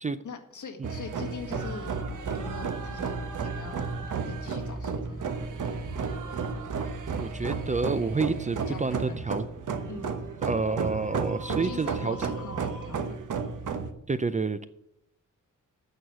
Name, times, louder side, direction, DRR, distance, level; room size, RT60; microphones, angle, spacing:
voice 1, 0.2-1.9 2.3-3.9 4.3-5.3 8.7-9.2 9.9-10.2 11.5-13.2, left 5 dB, 65° left, 2 dB, 1.9 m, -42 dB
sound 1, 0.8-13.9, right 5 dB, 70° right, 1.1 m, -33 dB
sound 2, 1.4-8.2, equal, 15° left, 0.8 m, -43 dB
voice 2, 7.2-9.4 10.4-12.2 14.1-14.7, right 4 dB, 25° right, 13 dB, 0.4 m, -29 dB
9.3 x 6.4 x 7.5 m, 0.80 s
wide cardioid pair, 155°, 32 cm